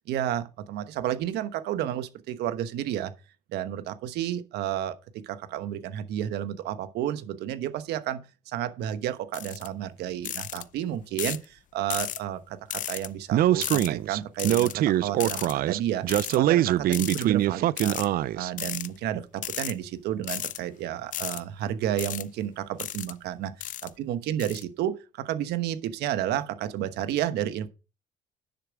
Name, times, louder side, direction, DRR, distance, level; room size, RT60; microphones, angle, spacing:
voice 1, 0.1-3.1 3.5-5.0 5.2-8.2 8.5-16.0 16.3-18.0 18.4-27.7, right 11 dB, 80° right, 1.1 m, -31 dB
sound 1, 9.3-9.7 10.2-10.6 11.2-11.4 11.9-12.2 12.7-13.1 13.6-13.9 14.4-14.7 15.2-15.5 16.1-16.4 16.9-17.2 17.8-18.1 18.6-18.9 19.4-19.7 20.2-20.6 21.1-21.4 22.0-22.2 22.8-23.1 23.6-23.9 24.4-24.6, left 11 dB, 50° left, 0.5 m, -34 dB
Speech, 13.3-18.5, right 13 dB, 60° right, 0.4 m, -23 dB
10.0 x 7.0 x 4.8 m
cardioid pair, 110°, 17 cm